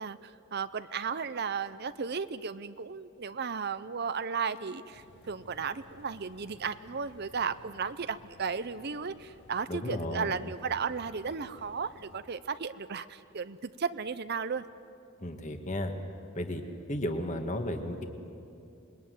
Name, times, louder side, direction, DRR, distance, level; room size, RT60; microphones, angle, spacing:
voice 1, 0.0-14.6, right 5 dB, 50° right, 13 dB, 0.6 m, -35 dB
sound 1, 4.9-12.2, left 1 dB, 55° left, 2.1 m, -57 dB
voice 2, 9.7-10.3 15.2-15.9 16.4-16.6 16.9-18.1, left 1 dB, 35° left, 5 dB, 1.8 m, -33 dB
26.5 x 21.5 x 9.5 m, 2.6 s
head